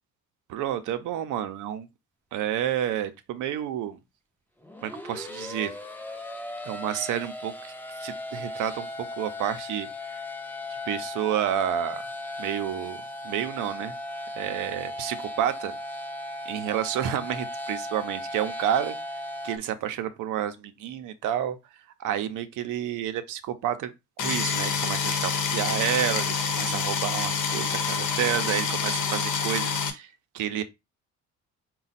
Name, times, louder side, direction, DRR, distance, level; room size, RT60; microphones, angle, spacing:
voice 1, 0.5-1.9 2.3-4.0 4.8-5.7 6.6-7.7 8.0-8.9 9.1-10.3 10.9-12.1 12.4-13.0 13.2-13.9 14.4-15.7 16.5-19.0 19.4-21.6 22.0-23.9 24.2-30.1 30.3-30.6, right 10 dB, 90° right, 0.6 m, -30 dB
sound 1, 4.6-19.6, left 1 dB, 5° left, 0.6 m, -37 dB
sound 2, 24.2-29.9, left 5 dB, 80° left, 0.9 m, -27 dB
4.1 x 2.2 x 4.0 m
cardioid pair, 90°, 30 cm